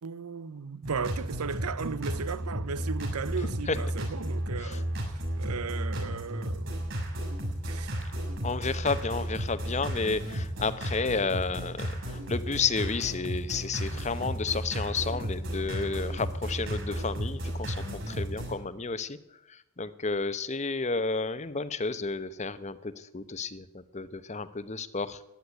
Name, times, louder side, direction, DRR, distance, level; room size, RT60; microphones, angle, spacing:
voice 1, 0.0-4.9 5.1-6.9 7.6-8.0, right 5 dB, 90° right, 0.7 m, -36 dB
sound 1, 0.8-18.6, equal, 55° right, 6.6 m, -33 dB
voice 2, 8.4-19.2 19.8-25.2, left 4 dB, 30° left, 0.8 m, -31 dB
14.5 x 10.0 x 9.8 m
head